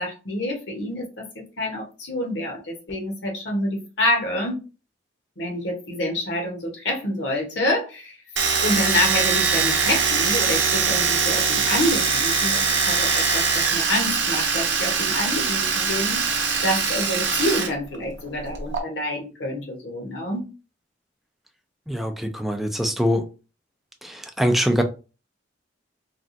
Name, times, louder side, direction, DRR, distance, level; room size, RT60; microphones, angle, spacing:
voice 1, 0.0-4.6 5.4-20.5, left 1 dB, 65° left, 0 dB, 1.1 m, -27 dB
Domestic sounds home sounds, 8.4-17.7 17.9-18.8, right 5 dB, 65° right, 0.7 m, -22 dB
voice 2, 21.9-23.3 24.0-24.8, equal, ahead, 5 dB, 0.4 m, -23 dB
3.3 x 2.3 x 2.6 m, 0.32 s
head